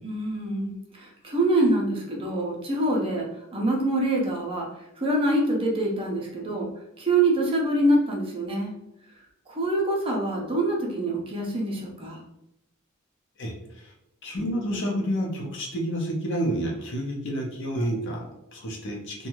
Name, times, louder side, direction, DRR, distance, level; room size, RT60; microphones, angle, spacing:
voice 1, 0.0-3.3 3.5-4.7 5.0-6.7 7.0-8.7 9.5-12.2, right 1 dB, 25° right, -2 dB, 0.6 m, -25 dB
voice 2, 13.4-13.9 14.2-19.3, equal, 55° left, -1 dB, 0.7 m, -29 dB
2.6 x 2.3 x 3.0 m, 0.83 s
head